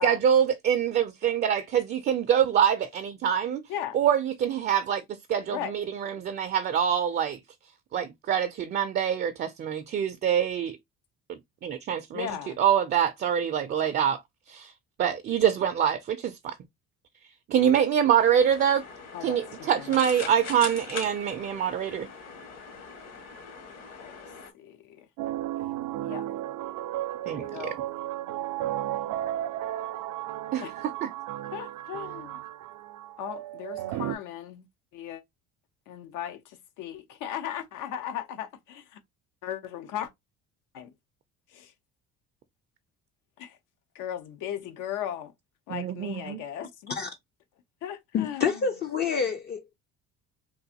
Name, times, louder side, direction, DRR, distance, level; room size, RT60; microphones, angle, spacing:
voice 1, 0.0-3.6 3.9-5.0 5.3-7.4 7.9-10.8 11.3-12.3 12.6-14.2 14.5-14.7 15.0-16.5 17.5-18.8 19.2-22.1 27.3-27.4 30.5-30.6 31.0-31.1 45.7-46.4, right 9 dB, 35° right, 0.4 m, -25 dB
voice 2, 12.1-12.6 19.1-19.9 24.0-24.3 24.5-25.1 26.0-26.3 27.2-27.8 30.6-30.7 31.5-32.4 33.2-34.7 34.9-35.2 35.9-39.0 39.4-40.1 40.7-40.9 41.5-41.7 43.4-43.6 43.9-45.3 45.7-46.9 47.8-48.6, left 10 dB, 80° left, 0.8 m, -37 dB
sound 1, 18.2-24.5, left 5 dB, 55° left, 1.3 m, -41 dB
sound 2, 25.2-34.1, right 13 dB, 85° right, 0.5 m, -34 dB
voice 3, 48.1-49.8, left 6 dB, 35° left, 0.4 m, -28 dB
3.8 x 2.5 x 2.7 m
cardioid pair, 160°, 30 cm